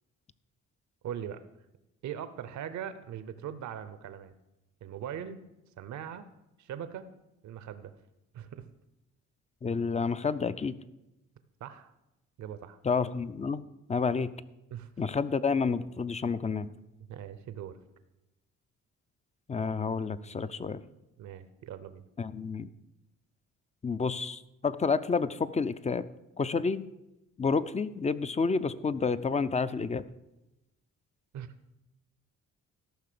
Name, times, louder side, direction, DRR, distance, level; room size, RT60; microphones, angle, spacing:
voice 1, 1.0-1.4 2.0-4.3 4.8-5.4 5.8-6.3 6.6-7.0 7.4-7.9 8.3-8.7 11.6-11.9 12.4-12.8 14.7-14.9 17.1-17.8 21.2-22.0 31.3-31.5, right 9 dB, 70° right, 12 dB, 0.8 m, -40 dB
voice 2, 9.6-10.8 12.8-13.6 13.9-14.3 15.0-16.7 19.5-20.8 22.2-22.7 23.8-26.0 26.4-26.9 27.4-30.0, left 5 dB, 25° left, 14 dB, 0.5 m, -29 dB
13.5 x 5.8 x 6.8 m, 0.95 s
cardioid pair, 90°, 30 cm